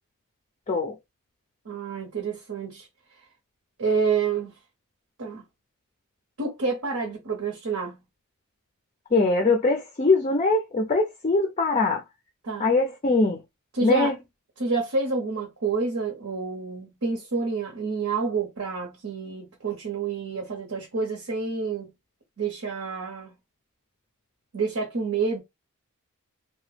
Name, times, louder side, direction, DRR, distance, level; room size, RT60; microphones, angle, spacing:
voice 1, 1.6-2.9 3.8-4.6 5.2-5.4 6.4-8.0 12.4-12.7 13.7-14.1 14.6-21.9 22.4-23.4 24.5-25.4, right 4 dB, 70° right, 1.0 m, -28 dB
voice 2, 9.1-12.0 12.6-13.4 13.8-14.2, left 3 dB, 30° left, 0.4 m, -22 dB
2.8 x 2.2 x 3.3 m
head